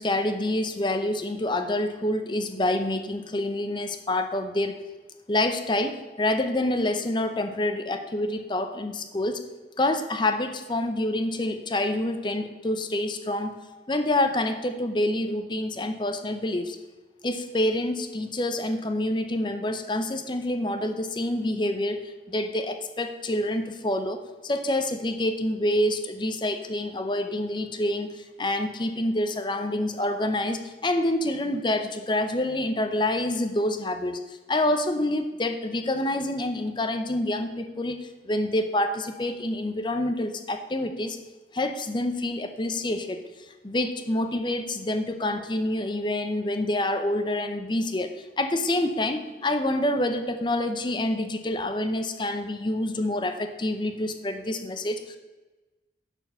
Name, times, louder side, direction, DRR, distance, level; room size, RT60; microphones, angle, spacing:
voice 1, 0.0-4.8 5.3-9.4 9.8-13.5 13.9-16.8 17.2-41.2 41.5-43.2 43.6-55.2, left 1 dB, 25° left, 8 dB, 0.6 m, -27 dB
10.5 x 4.4 x 6.8 m, 1.2 s
head